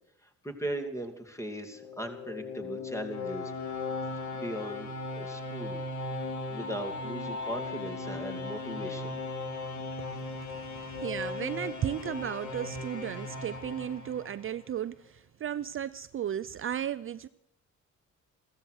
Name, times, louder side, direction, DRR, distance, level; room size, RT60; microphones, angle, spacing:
voice 1, 0.2-3.5 4.3-5.8 6.5-9.2, right 1 dB, 10° left, 7 dB, 2.6 m, -38 dB
sound 1, 1.6-14.7, left 3 dB, 70° left, 3.0 m, -37 dB
voice 2, 10.0-17.3, right 10 dB, 45° right, 14 dB, 0.5 m, -35 dB
15.0 x 14.5 x 6.4 m, 0.81 s
cardioid pair, 90°, 30 cm